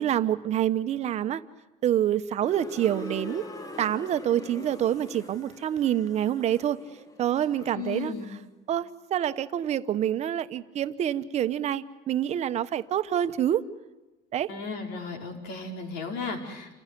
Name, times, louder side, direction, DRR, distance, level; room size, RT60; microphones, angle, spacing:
voice 1, 0.0-1.4 1.8-3.5 3.8-6.8 7.2-8.1 8.7-13.6 14.3-14.5, right 11 dB, 40° right, 12 dB, 1.0 m, -27 dB
sound 1, 2.4-8.3, left 2 dB, 20° left, 1.7 m, -43 dB
voice 2, 7.7-8.3 14.5-16.7, left 4 dB, 75° left, 3 dB, 5.0 m, -35 dB
29.0 x 15.5 x 9.9 m, 1.1 s
cardioid pair, 150°, 17 cm